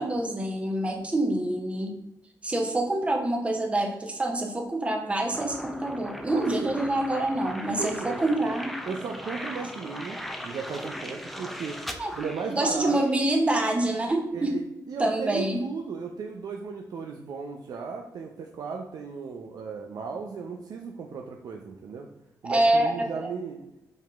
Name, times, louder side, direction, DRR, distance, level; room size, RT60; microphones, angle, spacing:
voice 1, 0.0-1.9 2.4-8.7 12.0-12.1 12.5-14.5 15.0-15.6 22.4-23.1, right 1 dB, 20° right, 3 dB, 1.0 m, -26 dB
sound 1, 5.3-13.1, equal, ahead, 0.5 m, -38 dB
voice 2, 6.3-6.8 7.8-8.2 8.9-11.8 12.1-13.0 14.3-22.1 22.4-23.7, right 5 dB, 75° right, 2 dB, 0.7 m, -36 dB
5.6 x 5.4 x 3.5 m, 0.87 s
wide cardioid pair, 160°, 7 cm